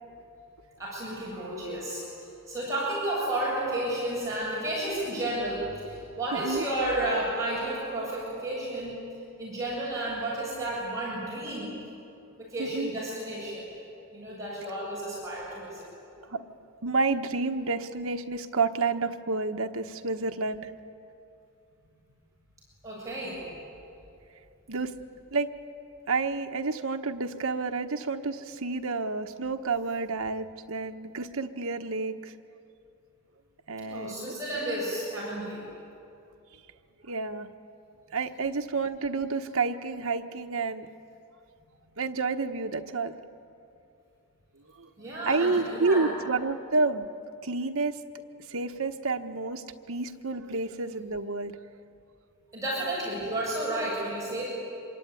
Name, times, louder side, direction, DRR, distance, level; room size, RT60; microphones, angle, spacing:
voice 1, 0.8-2.1 2.5-9.0 9.4-11.7 12.4-13.7 14.1-15.9 22.8-23.4 33.9-35.6 45.0-46.1 52.5-54.5, right 1 dB, 15° right, -7 dB, 7.5 m, -32 dB
voice 2, 6.3-6.6 12.6-12.9 16.3-16.4 16.8-20.7 24.7-24.9 25.3-25.5 26.1-32.3 33.7-34.4 37.0-37.5 38.1-40.9 42.0-43.1 44.8-44.9 45.2-47.1 47.4-48.0 48.3-51.6, right 3 dB, 70° right, 6 dB, 1.2 m, -29 dB
26.5 x 23.5 x 9.7 m, 2.7 s
head